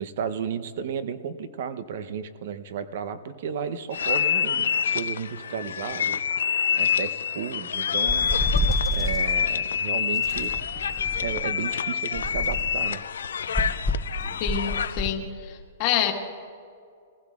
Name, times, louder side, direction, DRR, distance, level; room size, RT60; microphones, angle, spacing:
voice 1, 0.0-6.2 6.8-8.3 8.9-10.5 11.2-13.0, right 7 dB, 55° right, 12 dB, 0.7 m, -33 dB
sound 1, 3.9-15.1, left 8 dB, 90° left, 0.4 m, -27 dB
sound 2, 8.1-9.3 10.2-11.5 12.1-12.8 13.5-15.2, equal, 5° left, 0.5 m, -28 dB
voice 2, 14.4-16.1, left 9 dB, 35° left, 3 dB, 1.4 m, -27 dB
20.0 x 15.5 x 2.4 m, 2.3 s
hypercardioid pair, 160°, 0 cm